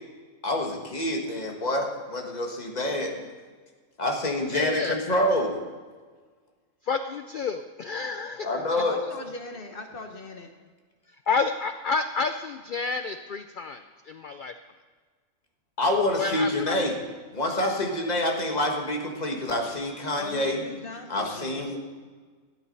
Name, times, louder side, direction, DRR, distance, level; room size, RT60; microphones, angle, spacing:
voice 1, 0.4-3.1 4.0-5.6 8.4-9.0 15.8-16.9 17.3-20.6 21.1-21.8, left 1 dB, 30° left, 1 dB, 1.6 m, -27 dB
voice 2, 4.5-5.0 6.9-8.5 11.3-13.8 14.2-14.5 16.2-16.8, left 4 dB, 80° left, 9 dB, 0.4 m, -29 dB
voice 3, 8.4-10.5 20.1-21.8, left 2 dB, 45° left, 5 dB, 1.0 m, -39 dB
13.0 x 8.5 x 5.4 m, 1.5 s
omnidirectional pair, 1.5 m